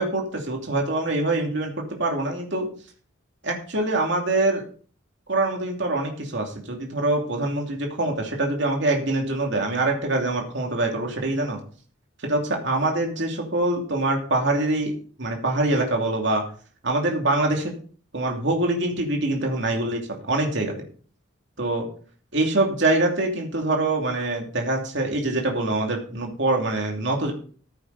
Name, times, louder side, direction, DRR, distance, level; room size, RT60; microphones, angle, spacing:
voice 1, 0.0-2.7 3.4-4.6 5.3-11.6 12.2-14.9 15.2-16.4 16.8-17.8 18.1-20.0 20.3-20.7 21.6-21.9 22.3-27.3, right 2 dB, 60° right, 1 dB, 2.8 m, -24 dB
14.5 x 8.1 x 4.1 m, 0.44 s
head